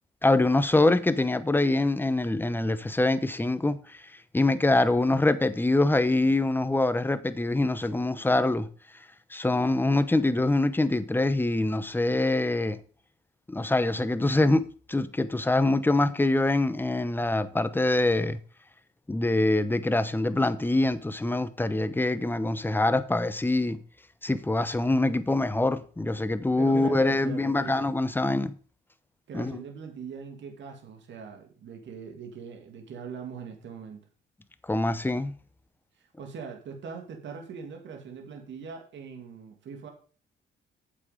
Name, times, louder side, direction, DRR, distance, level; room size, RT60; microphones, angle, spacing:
voice 1, 0.2-3.8 4.3-8.7 9.3-12.8 13.5-18.4 19.1-23.8 24.2-28.5 29.3-29.5 34.7-35.3, left 2 dB, 10° left, 0.9 m, -24 dB
voice 2, 26.6-27.9 29.3-34.0 36.0-39.9, right 6 dB, 65° right, 2.3 m, -41 dB
8.5 x 7.4 x 5.0 m
cardioid pair, 90°, 20 cm